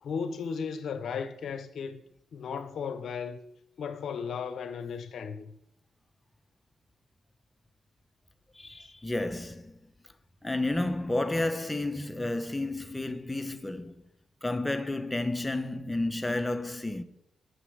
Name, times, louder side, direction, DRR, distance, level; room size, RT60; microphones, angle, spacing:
voice 1, 0.0-2.0 2.3-3.4 3.8-5.5, left 6 dB, 70° left, 0.8 m, -35 dB
voice 2, 8.5-9.8 10.4-14.0 14.4-17.0, left 2 dB, 15° left, 0.9 m, -31 dB
8.0 x 6.3 x 7.9 m
cardioid pair, 65°, 0 cm